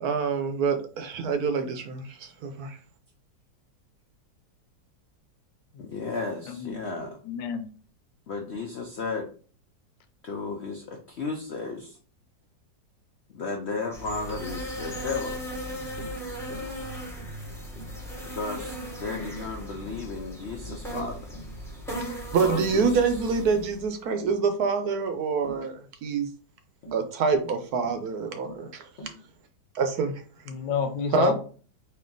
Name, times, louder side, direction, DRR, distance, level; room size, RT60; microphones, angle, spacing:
voice 1, 0.0-2.8 22.3-26.3 26.9-28.9 29.7-30.1 31.1-31.3, right 5 dB, 65° right, 1.0 m, -26 dB
voice 2, 5.7-7.2 8.3-9.3 10.2-12.0 13.3-15.4 18.2-21.2 22.4-23.0, left 4 dB, 65° left, 0.6 m, -34 dB
voice 3, 7.2-7.7 30.5-31.3, left 6 dB, 85° left, 1.4 m, -28 dB
sound 1, 13.9-23.9, equal, ahead, 0.6 m, -37 dB
Tap, 14.3-14.5 15.1-15.3 16.0-16.2 16.5-16.7 17.2-17.4 17.8-18.0 18.5-18.7 19.2-19.4 19.9-20.1 20.7-20.9 21.3-21.6 22.0-22.2 22.7-22.8 23.5-23.8 24.2-24.4 25.4-25.7 26.8-27.0 27.8-28.1 28.4-28.7 29.0-29.2, equal, 45° left, 1.0 m, -44 dB
4.4 x 2.9 x 3.8 m
omnidirectional pair, 1.9 m